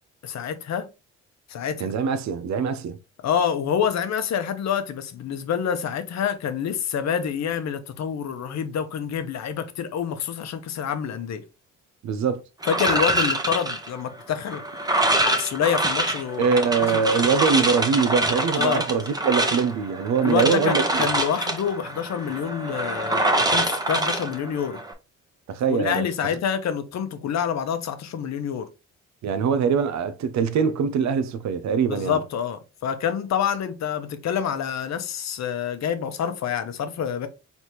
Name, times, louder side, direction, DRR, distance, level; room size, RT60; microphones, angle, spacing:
voice 1, 0.2-0.9 1.5-1.9 3.2-11.4 12.7-14.6 15.2-17.0 18.6-18.8 20.2-24.8 25.7-28.7 31.8-37.3, left 8 dB, 60° left, 0.9 m, -27 dB
voice 2, 1.8-3.0 12.0-12.4 16.4-21.0 25.5-26.1 29.2-32.2, right 6 dB, 65° right, 0.7 m, -23 dB
sound 1, 12.6-24.9, right 1 dB, 15° right, 0.9 m, -25 dB
4.2 x 3.5 x 3.0 m
cardioid pair, 90°, 30 cm